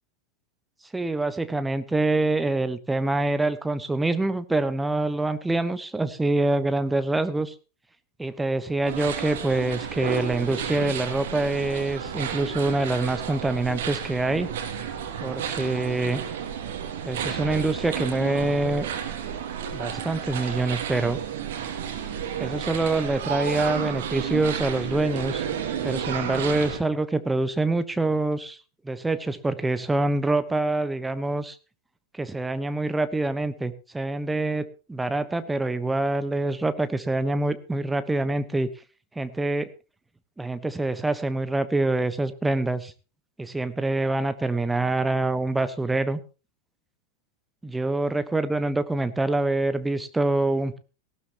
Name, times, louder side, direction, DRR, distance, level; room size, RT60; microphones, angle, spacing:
voice 1, 0.9-7.5 8.2-14.5 15.2-16.2 17.0-18.9 19.7-21.2 22.4-25.5 25.8-28.6 28.8-31.6 32.1-38.7 39.1-39.7 40.4-42.9 43.4-46.2 47.6-50.8, right 2 dB, 10° right, 12 dB, 1.2 m, -25 dB
sound 1, 8.8-26.8, right 8 dB, 55° right, 2.4 m, -32 dB
18.0 x 15.5 x 3.0 m, 0.33 s
figure-of-eight pair, 90°, 0 cm